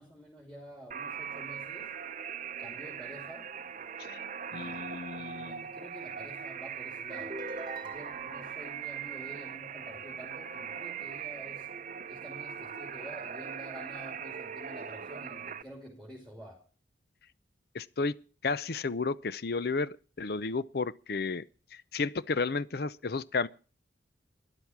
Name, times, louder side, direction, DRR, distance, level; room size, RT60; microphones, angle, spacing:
voice 1, 0.0-2.0 2.6-3.6 4.5-7.4 7.8-11.7 12.1-16.6, equal, 5° left, 3.0 m, -49 dB
sound 1, 0.9-15.6, right 7 dB, 40° right, 0.7 m, -40 dB
voice 2, 4.5-5.7 17.7-21.4 21.7-23.5, left 4 dB, 55° left, 0.6 m, -33 dB
sound 2, 7.1-8.6, right 1 dB, 25° right, 1.4 m, -42 dB
13.0 x 11.0 x 7.2 m
head